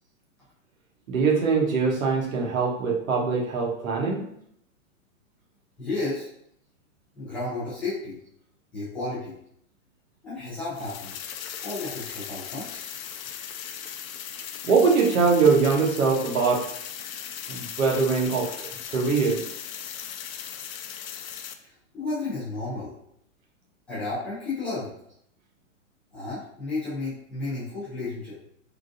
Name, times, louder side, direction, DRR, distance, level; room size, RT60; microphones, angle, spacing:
voice 1, 1.1-4.3 14.6-16.7 17.5-19.4, right 5 dB, 80° right, -1 dB, 1.1 m, -22 dB
voice 2, 5.8-6.3 7.2-8.2 8.7-9.3 10.2-11.1 11.6-12.8 21.9-22.9 23.9-24.9 26.1-28.3, left 3 dB, 5° left, -13 dB, 0.4 m, -32 dB
sound 1, 10.7-21.5, left 9 dB, 85° left, 0.5 m, -38 dB
3.7 x 2.4 x 2.4 m, 0.70 s
hypercardioid pair, 150°, 40 cm